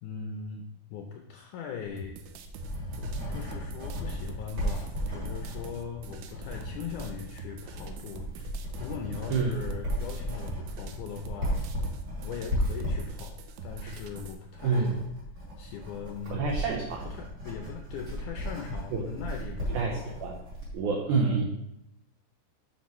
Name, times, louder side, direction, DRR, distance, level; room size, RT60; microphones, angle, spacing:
voice 1, 0.0-2.2 3.0-8.3 8.8-11.7 12.2-15.0 15.4-16.4 17.0-20.2, left 6 dB, 85° left, 3 dB, 1.8 m, -40 dB
sound 1, 2.0-14.4, right 6 dB, 90° right, 2.8 m, -46 dB
Writing, 2.2-20.8, equal, 35° right, 3.3 m, -35 dB
voice 2, 14.6-15.0 16.3-17.1 18.9-19.0 19.7-20.4 20.7-21.4, right 4 dB, 70° right, 0 dB, 2.0 m, -27 dB
11.5 x 6.0 x 3.1 m, 0.82 s
omnidirectional pair, 4.4 m